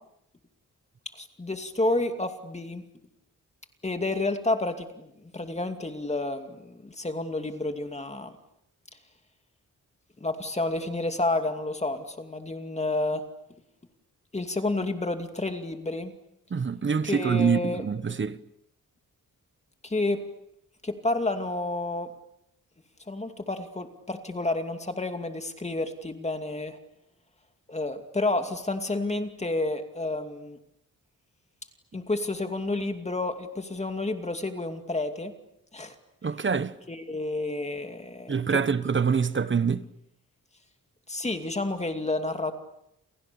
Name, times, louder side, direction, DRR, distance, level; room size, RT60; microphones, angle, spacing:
voice 1, 1.2-2.8 3.8-8.4 10.2-13.2 14.3-16.1 17.1-17.8 19.8-20.2 20.8-22.1 23.1-26.8 27.7-30.6 31.9-35.3 35.7-35.9 36.9-38.3 41.1-42.5, left 2 dB, 20° left, 2.5 m, -30 dB
voice 2, 16.5-18.4 36.2-36.7 38.3-39.9, right 6 dB, 35° right, 1.1 m, -25 dB
29.0 x 28.5 x 7.0 m
wide cardioid pair, 140°, 34 cm